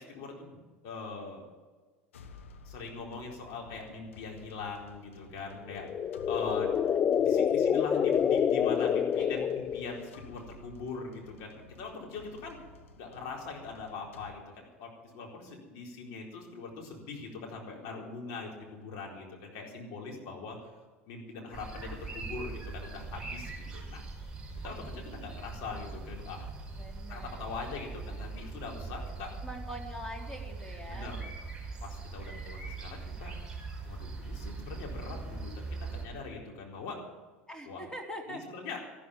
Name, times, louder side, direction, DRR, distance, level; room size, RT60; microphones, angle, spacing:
voice 1, 0.0-1.4 2.6-5.9 6.3-6.7 7.1-12.6 13.0-20.7 21.1-24.0 24.6-26.5 27.1-29.3 30.9-31.2 31.8-33.3 33.8-37.0 37.7-37.8 38.3-38.8, left 4 dB, 55° left, 0 dB, 4.3 m, -42 dB
sound 1, 2.1-14.3, left 3 dB, 75° left, 1.3 m, -54 dB
sound 2, 5.7-10.1, left 8 dB, 30° left, 0.5 m, -27 dB
voice 2, 7.6-8.0 8.5-9.5 26.7-27.5 27.9-28.3 29.4-31.2 37.5-38.4, equal, 10° left, 2 dB, 3.6 m, -44 dB
sound 3, 21.5-36.0, right 3 dB, 10° right, 5.1 m, -41 dB
14.0 x 12.5 x 7.4 m, 1.4 s
figure-of-eight pair, 75°, 7 cm